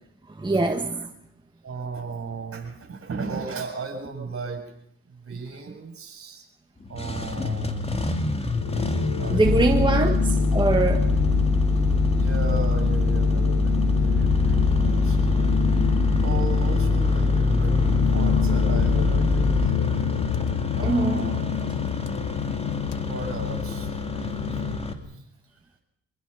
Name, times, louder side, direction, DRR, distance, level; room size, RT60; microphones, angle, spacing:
voice 1, 0.3-1.1 9.3-10.2 10.5-11.1 20.8-21.3, right 2 dB, 15° right, 4 dB, 1.6 m, -23 dB
voice 2, 1.6-4.6 5.1-6.5 6.9-8.0 9.2-10.0 12.1-15.8 16.2-20.0 20.7-21.7 22.9-25.2, right 4 dB, 45° right, 4 dB, 7.3 m, -36 dB
Engine starting, 6.8-24.9, left 2 dB, 20° left, 2.8 m, -31 dB
sound 1, 8.5-24.8, left 13 dB, 80° left, 0.8 m, -28 dB
sound 2, 9.4-19.7, left 2 dB, 5° left, 0.9 m, -22 dB
24.5 x 22.0 x 5.7 m, 0.73 s
cardioid pair, 90°, 30 cm